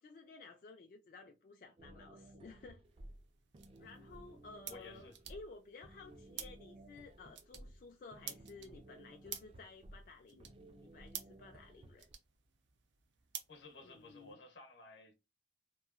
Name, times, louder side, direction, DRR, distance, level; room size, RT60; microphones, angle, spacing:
voice 1, 0.0-2.8 3.8-12.1 13.8-14.4, left 3 dB, 50° left, 0.3 m, -55 dB
sound 1, 1.8-12.1, right 1 dB, 30° right, 0.3 m, -57 dB
sound 2, 2.8-14.3, right 9 dB, 85° right, 0.5 m, -53 dB
voice 2, 4.7-5.2 13.5-15.1, left 2 dB, 80° left, 0.8 m, -54 dB
2.8 x 2.3 x 2.4 m
head